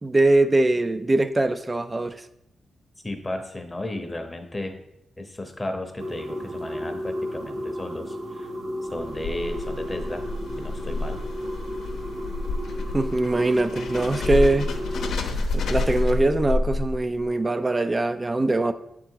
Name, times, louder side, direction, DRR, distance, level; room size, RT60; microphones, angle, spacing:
voice 1, 0.0-2.2 12.9-14.7 15.5-18.7, right 2 dB, 25° right, 0.4 m, -22 dB
voice 2, 3.0-4.8 5.2-8.5 8.9-10.2 10.6-11.2, left 1 dB, 20° left, 0.8 m, -34 dB
sound 1, 6.0-15.2, equal, 70° right, 1.2 m, -34 dB
sound 2, 8.9-17.2, left 3 dB, 85° left, 0.7 m, -29 dB
8.2 x 3.8 x 4.6 m
cardioid pair, 85°, 0 cm